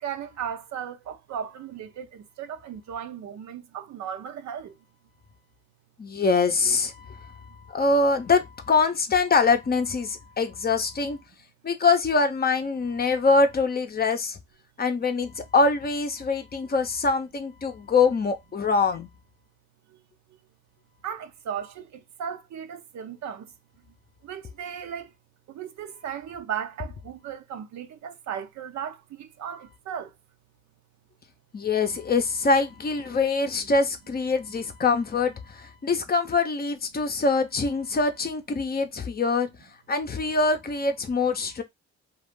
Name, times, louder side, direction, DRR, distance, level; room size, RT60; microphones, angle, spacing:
voice 1, 0.0-4.8 19.9-20.0 21.0-23.5 24.2-25.1 25.5-30.1, right 8 dB, 65° right, 0.6 m, -36 dB
voice 2, 6.0-11.2 11.6-14.4 14.8-19.1 31.5-39.5 39.9-41.6, left 4 dB, 30° left, 0.6 m, -24 dB
2.5 x 2.4 x 3.5 m
cardioid pair, 90°, 30 cm